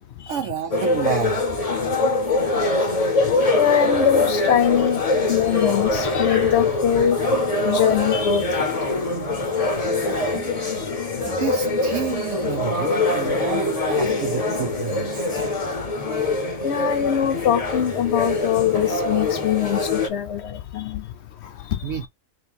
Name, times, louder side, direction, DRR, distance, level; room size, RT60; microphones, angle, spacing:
voice 1, 0.3-1.4 10.0-10.5 11.3-15.5 21.8-22.1, right 9 dB, 70° right, 0.9 m, -30 dB
sound 1, 0.7-20.1, left 2 dB, 30° left, 0.9 m, -23 dB
voice 2, 2.2-10.0 10.8-11.4 13.2-13.3 16.2-22.1, left 10 dB, 65° left, 0.8 m, -24 dB
sound 2, 4.0-5.8 6.1-6.7 7.0-8.8 9.1-9.4 9.7-12.7, right 4 dB, 90° right, 1.5 m, -44 dB
3.3 x 2.7 x 4.0 m
omnidirectional pair, 1.4 m